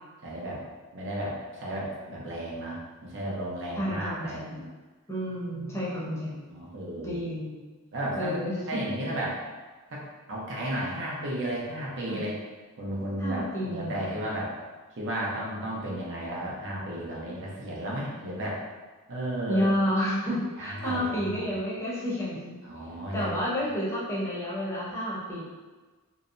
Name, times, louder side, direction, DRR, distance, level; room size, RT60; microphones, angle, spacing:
voice 1, 0.2-0.6 0.9-4.6 5.5-5.8 6.5-7.2 7.9-8.4 8.7-9.4 9.9-12.4 12.8-14.5 14.9-18.6 19.1-19.7 20.6-21.5 22.6-23.3, right 1 dB, 55° right, -4 dB, 0.6 m, -33 dB
voice 2, 3.8-4.6 5.1-6.4 7.0-7.6 8.2-8.8 12.1-12.2 13.2-14.0 19.5-22.5 23.1-25.4, equal, 10° left, -8 dB, 0.7 m, -30 dB
2.7 x 2.0 x 2.5 m, 1.3 s
head